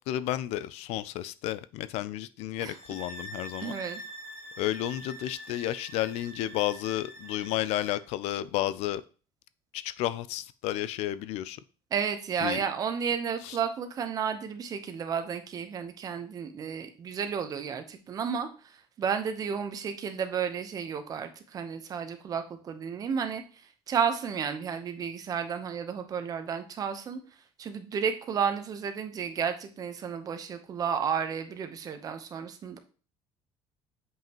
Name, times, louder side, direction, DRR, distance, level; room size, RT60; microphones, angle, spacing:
voice 1, 0.1-3.7 4.6-9.0 9.7-11.6 12.4-12.6 13.4-13.6, left 13 dB, 65° left, 15 dB, 0.4 m, -32 dB
sound 1, 2.6-8.0, right 1 dB, 20° left, 1.4 m, -45 dB
voice 2, 3.6-4.0 11.9-27.2 27.6-32.8, right 7 dB, 30° right, 8 dB, 0.9 m, -32 dB
7.4 x 5.5 x 3.0 m, 0.36 s
cardioid pair, 160°, 11 cm